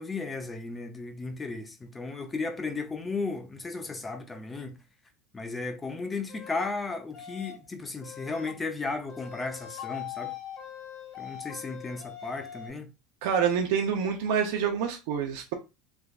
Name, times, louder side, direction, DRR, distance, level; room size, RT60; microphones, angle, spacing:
voice 1, 0.0-4.8 5.3-10.3 11.2-12.9, left 3 dB, 15° left, 0.5 m, -35 dB
sound 1, 6.3-6.7 7.1-7.7 8.0-8.5 9.1-12.7, left 11 dB, 50° left, 1.4 m, -42 dB
voice 2, 13.2-15.5, right 7 dB, 70° right, 0.6 m, -27 dB
3.5 x 3.0 x 2.4 m
cardioid pair, 155°, 0 cm